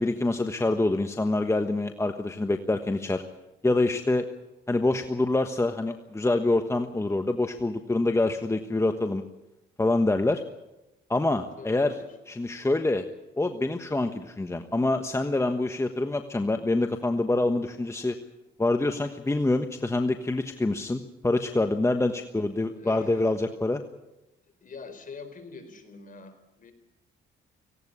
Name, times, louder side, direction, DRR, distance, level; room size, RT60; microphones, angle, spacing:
voice 1, 0.0-3.2 3.6-4.2 4.7-9.2 9.8-10.4 11.1-11.9 12.3-13.0 13.4-18.1 18.6-23.8, left 2 dB, 15° left, 6 dB, 1.3 m, -26 dB
voice 2, 11.6-12.1 22.5-23.3 24.6-26.7, left 4 dB, 45° left, 8 dB, 4.5 m, -45 dB
18.5 x 17.0 x 10.0 m, 0.96 s
cardioid pair, 90°, 20 cm